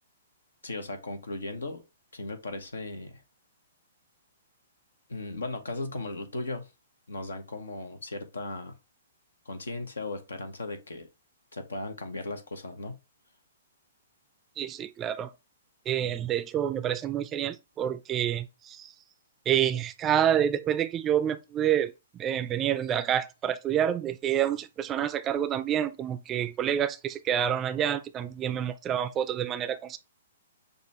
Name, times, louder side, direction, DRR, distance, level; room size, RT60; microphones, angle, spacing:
voice 1, 0.6-1.8 2.1-3.2 5.1-6.7 7.1-8.7 9.4-11.1 11.5-13.0, left 2 dB, 90° left, 1.0 m, -37 dB
voice 2, 14.6-15.3 15.9-18.9 19.5-30.0, right 10 dB, 20° right, 0.4 m, -28 dB
6.6 x 2.4 x 3.0 m
hypercardioid pair, 130°, 0 cm